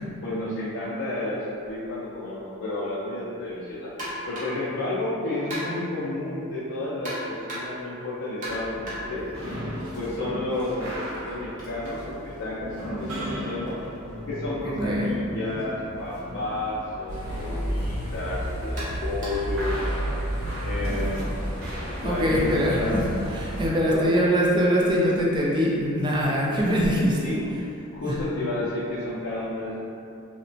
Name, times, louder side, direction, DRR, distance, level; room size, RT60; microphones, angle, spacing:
voice 1, 0.2-3.9 4.3-9.3 9.9-13.8 14.3-19.9 20.6-21.3 22.0-23.1 23.8-24.2 27.2-27.4 27.9-29.8, left 2 dB, 65° left, -9 dB, 0.4 m, -31 dB
sound 1, 4.0-4.7 5.5-6.0 7.0-7.9 8.4-10.2 10.5-14.4 15.5-15.6 16.1-16.2 17.1-17.3 18.8-19.6, equal, 35° right, 0.8 m, -38 dB
sound 2, 8.4-22.4, equal, 65° right, 0.6 m, -36 dB
voice 2, 14.6-15.1 22.0-23.0 23.3-27.4 28.1-28.2, equal, 20° right, -4 dB, 0.3 m, -23 dB
sound 3, 17.1-23.7, equal, 25° left, 0.6 m, -31 dB
2.8 x 2.1 x 2.5 m, 2.6 s
head